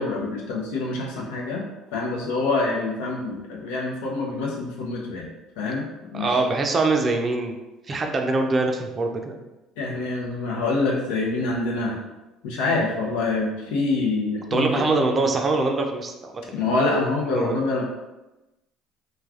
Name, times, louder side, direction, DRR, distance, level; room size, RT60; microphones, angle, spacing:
voice 1, 0.0-1.7 1.9-5.3 5.6-6.3 9.8-12.0 12.4-14.8 16.5-17.8, left 3 dB, 80° left, -1 dB, 0.6 m, -26 dB
voice 2, 6.1-7.6 7.9-9.4 14.5-16.3 17.3-17.6, right 3 dB, 35° right, 4 dB, 0.4 m, -23 dB
3.2 x 2.2 x 2.4 m, 1.0 s
supercardioid pair, 75°, 0 cm